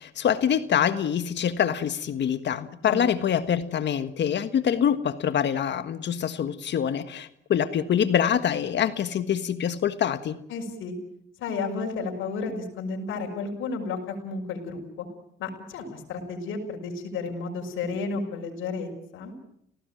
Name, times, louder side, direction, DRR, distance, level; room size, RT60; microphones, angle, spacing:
voice 1, 0.0-10.4, left 8 dB, 65° left, 11 dB, 1.6 m, -25 dB
voice 2, 10.5-10.9 11.4-15.1 15.4-19.3, left 4 dB, 85° left, 0 dB, 6.0 m, -32 dB
29.5 x 18.5 x 9.3 m, 0.74 s
cardioid pair, 90°, 20 cm